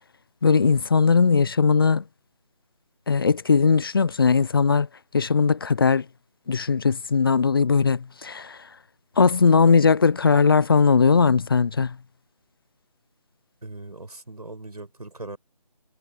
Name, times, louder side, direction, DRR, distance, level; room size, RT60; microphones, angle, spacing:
voice 1, 0.4-2.0 3.1-4.9 5.1-6.1 6.5-8.7 9.2-12.0, left 5 dB, 35° left, 0.9 m, -19 dB
voice 2, 13.6-15.4, right 2 dB, 80° right, 5.5 m, -39 dB
figure-of-eight pair, 160°, 20 cm